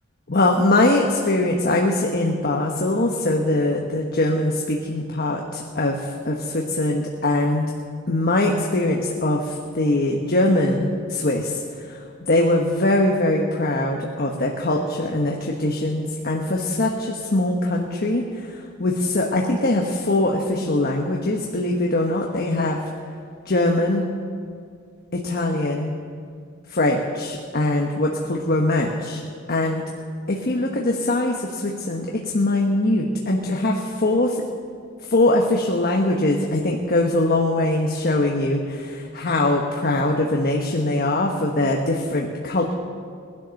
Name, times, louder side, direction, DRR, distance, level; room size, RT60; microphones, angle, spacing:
voice 1, 0.3-7.7 8.1-11.6 11.9-12.0 12.3-22.8 23.4-24.0 25.1-25.9 26.7-29.2 29.5-29.8 30.3-34.4 35.1-42.7, left 2 dB, 45° left, 0 dB, 1.2 m, -22 dB
19.5 x 11.0 x 6.5 m, 2.2 s
head